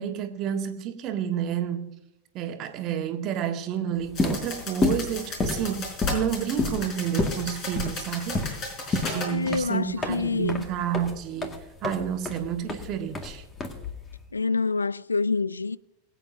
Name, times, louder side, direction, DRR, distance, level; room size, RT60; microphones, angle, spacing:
voice 1, 0.0-1.9 2.3-8.4 8.9-11.6 11.8-13.4, right 9 dB, 40° right, 1.6 m, -30 dB
sound 1, 4.0-14.2, left 3 dB, 20° left, 2.0 m, -30 dB
sound 2, 4.1-9.3, left 2 dB, 35° left, 4.9 m, -36 dB
voice 2, 9.3-10.6 14.3-15.8, left 4 dB, 80° left, 0.3 m, -26 dB
22.0 x 9.0 x 2.7 m
figure-of-eight pair, 90°, 0 cm